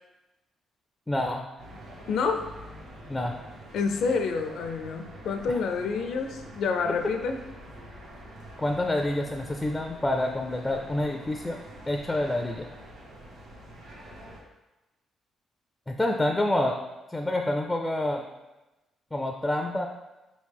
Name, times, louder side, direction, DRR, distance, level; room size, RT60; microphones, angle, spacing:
voice 1, 1.1-1.5 3.1-3.3 8.6-11.6 11.9-12.7 15.9-16.8 17.1-18.2 19.1-19.9, left 1 dB, 10° left, 3 dB, 0.3 m, -27 dB
sound 1, 1.6-14.4, equal, 85° right, 0.9 m, -46 dB
voice 2, 2.1-2.4 3.7-7.4, left 5 dB, 75° left, 5 dB, 0.4 m, -28 dB
4.9 x 3.2 x 3.4 m, 1.0 s
cardioid pair, 90°, 0 cm